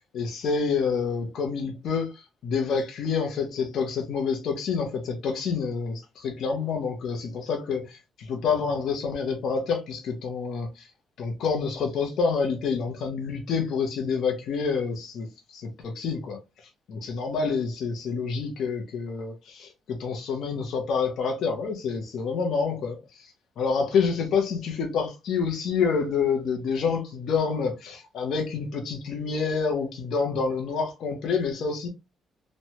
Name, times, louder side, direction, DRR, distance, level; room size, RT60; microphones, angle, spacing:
voice 1, 0.1-10.9 11.2-16.4 16.9-31.9, left 5 dB, 70° left, 0.7 m, -28 dB
3.1 x 2.2 x 2.8 m
cardioid pair, 90°, 0 cm